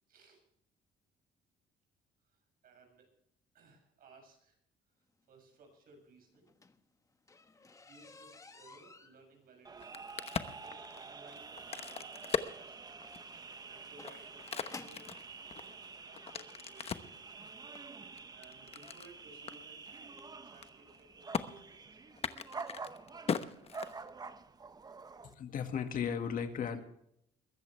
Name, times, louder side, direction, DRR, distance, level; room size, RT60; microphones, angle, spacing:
voice 1, 0.1-0.4 2.6-3.1 3.5-4.6 5.3-6.5 7.9-9.9 10.6-13.0 13.7-15.0 15.5-15.8 16.0-17.1 17.9-18.1 18.3-22.0, right 3 dB, 60° right, 3 dB, 7.5 m, -59 dB
sound 1, 6.3-15.2 16.1-16.2 16.8-17.0 17.3-17.4 17.7-17.8, left 3 dB, 20° left, 1.3 m, -54 dB
sound 2, 9.6-25.3, right 4 dB, 25° right, 1.0 m, -48 dB
Crack, 9.7-13.4 13.9-17.2 17.7-19.1 19.5-19.6 19.9-20.2 20.5-21.0 21.3-21.4 22.1-24.3, left 6 dB, 35° left, 1.0 m, -39 dB
voice 2, 25.2-26.8, left 7 dB, 55° left, 7 dB, 2.0 m, -36 dB
22.0 x 15.0 x 3.4 m, 0.72 s
cardioid pair, 110°, 17 cm